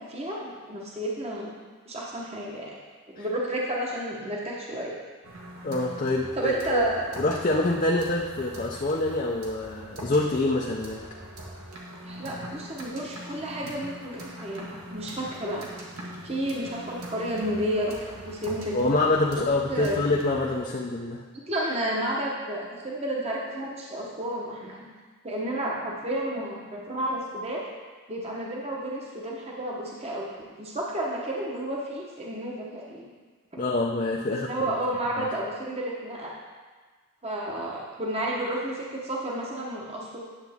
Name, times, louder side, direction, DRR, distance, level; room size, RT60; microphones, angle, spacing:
voice 1, 0.0-1.5 1.9-2.8 3.1-5.0 6.3-7.1 12.0-15.7 16.2-18.8 19.4-19.5 19.7-20.0 21.5-24.9 25.2-27.6 28.1-33.1 34.5-36.3 37.2-40.2, right 1 dB, 30° right, -3 dB, 1.0 m, -31 dB
sound 1, 5.2-20.6, right 1 dB, 85° right, 1.6 m, -42 dB
voice 2, 5.6-6.8 7.2-11.0 18.7-21.2 33.6-34.5 35.2-35.3, left 2 dB, 35° left, -1 dB, 0.6 m, -26 dB
9.9 x 7.2 x 3.6 m, 1.4 s
head